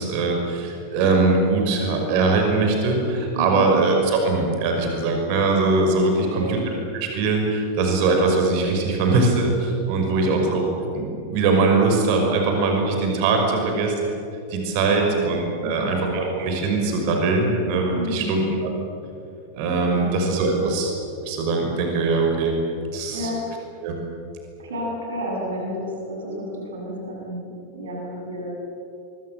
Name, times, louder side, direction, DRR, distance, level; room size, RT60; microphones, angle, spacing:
voice 1, 0.0-6.6 6.9-10.6 10.9-13.9 14.5-18.4 19.5-20.9 21.2-22.6 22.9-23.3 23.8-24.0, right 3 dB, 45° right, 2 dB, 5.8 m, -21 dB
voice 2, 3.3-3.7 6.1-6.5 10.2-10.3 13.5-13.9 14.9-15.2 15.6-16.0 17.9-18.5 19.9-20.1 20.5-20.7 23.1-23.4 24.6-28.5, equal, 65° right, -2 dB, 7.8 m, -32 dB
25.0 x 24.5 x 7.7 m, 2.7 s
figure-of-eight pair, 90°, 0 cm